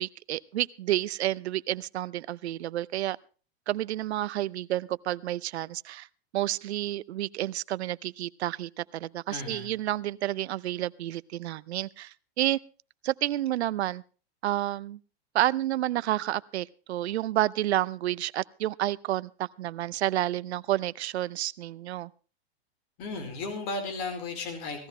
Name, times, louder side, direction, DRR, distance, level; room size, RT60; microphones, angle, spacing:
voice 1, 0.0-3.2 3.7-6.1 6.3-12.6 13.0-14.0 14.4-15.0 15.3-22.1, right 14 dB, 85° right, 20 dB, 0.7 m, -30 dB
voice 2, 9.3-9.7 23.0-24.9, left 3 dB, 50° left, 6 dB, 4.4 m, -35 dB
18.5 x 14.5 x 3.2 m, 0.37 s
hypercardioid pair, 130°, 32 cm